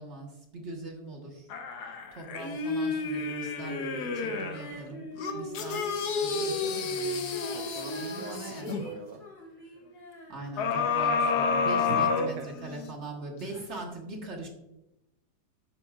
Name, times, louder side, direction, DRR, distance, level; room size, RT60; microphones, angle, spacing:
voice 1, 0.0-1.5 2.1-7.4 8.0-8.8 10.3-14.5, right 2 dB, 45° right, 1 dB, 1.7 m, -41 dB
sound 1, 1.5-4.7 5.2-8.8 10.6-12.9 13.4-13.5, left 4 dB, 80° left, 1.5 m, -30 dB
Female singing, 4.5-11.1 11.4-11.5, left 1 dB, 30° left, 3.0 m, -43 dB
voice 2, 7.5-9.2 11.8-12.5, right 5 dB, 65° right, 5 dB, 0.6 m, -40 dB
11.0 x 7.0 x 2.4 m, 0.90 s
omnidirectional pair, 1.7 m